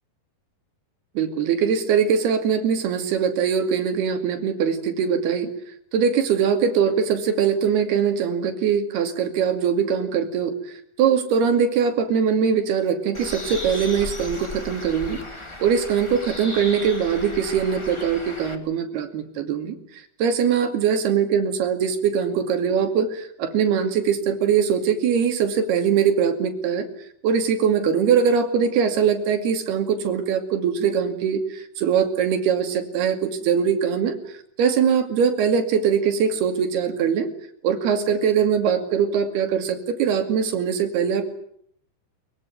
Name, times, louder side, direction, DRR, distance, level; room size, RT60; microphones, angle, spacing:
voice 1, 1.2-5.5 5.9-10.5 11.0-15.2 15.6-19.8 20.2-26.9 27.2-34.2 34.6-37.3 37.6-41.2, right 7 dB, 70° right, 7 dB, 4.4 m, -22 dB
Bird, 13.1-18.6, left 1 dB, 15° left, 0.9 m, -36 dB
22.5 x 22.0 x 9.4 m, 0.67 s
omnidirectional pair, 4.8 m